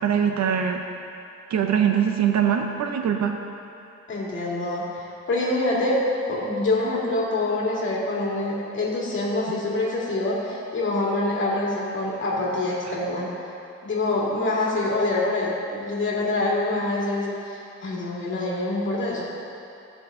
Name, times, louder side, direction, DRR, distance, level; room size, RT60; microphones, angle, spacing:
voice 1, 0.0-0.8 1.5-3.4, right 8 dB, 70° right, 4 dB, 0.8 m, -22 dB
voice 2, 4.1-13.3 13.8-19.2, left 2 dB, 40° left, -5 dB, 2.4 m, -25 dB
15.0 x 6.4 x 3.8 m, 2.9 s
wide cardioid pair, 145°, 29 cm